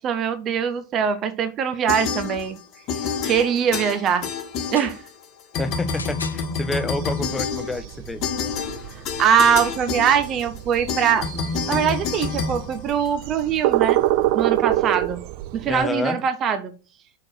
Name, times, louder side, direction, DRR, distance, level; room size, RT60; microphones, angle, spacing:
voice 1, 0.0-2.6 3.2-4.3 4.7-5.0 9.2-11.3 11.7-14.0 14.3-15.2 15.5-16.7, right 8 dB, 35° right, 0.8 m, -22 dB
sound 1, 1.9-2.6 2.9-5.2 5.5-13.4, left 5 dB, 45° left, 1.2 m, -28 dB
sound 2, 4.5-5.0 5.8-6.4 7.3-7.4, left 4 dB, 80° left, 0.5 m, -37 dB
voice 2, 5.6-8.2 15.6-16.2, left 2 dB, 10° left, 0.8 m, -28 dB
sound 3, 6.9-15.9, right 15 dB, 50° right, 0.4 m, -26 dB
5.8 x 4.4 x 6.2 m
figure-of-eight pair, 85°, 0 cm